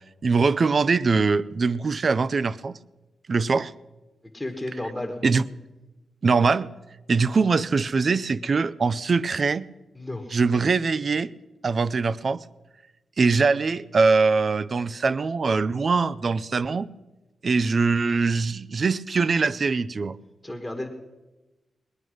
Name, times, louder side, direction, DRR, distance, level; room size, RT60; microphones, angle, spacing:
voice 1, 0.2-2.7 3.3-3.7 5.2-5.4 6.2-6.7 7.1-9.7 10.3-11.3 11.6-12.4 13.2-16.9 17.4-20.2, right 4 dB, 35° right, 0.4 m, -22 dB
voice 2, 4.3-5.2 9.9-10.3 20.4-20.9, left 1 dB, 10° left, 1.2 m, -32 dB
19.5 x 11.0 x 6.3 m
wide cardioid pair, 165°, 0 cm